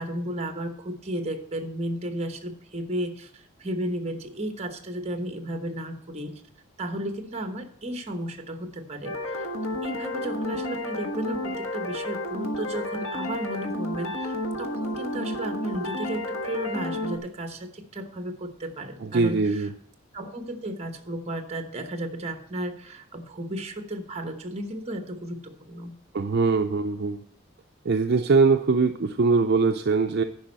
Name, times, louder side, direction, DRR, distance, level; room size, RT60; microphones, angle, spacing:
voice 1, 0.0-6.4 6.8-9.5 9.8-19.7 20.1-25.9, right 1 dB, 30° right, 7 dB, 1.1 m, -34 dB
sound 1, 9.0-17.2, left 1 dB, 80° left, 1.4 m, -31 dB
voice 2, 19.0-19.7 26.1-27.2 27.8-30.2, right 4 dB, 50° right, 6 dB, 0.4 m, -22 dB
10.5 x 5.3 x 7.4 m, 0.69 s
head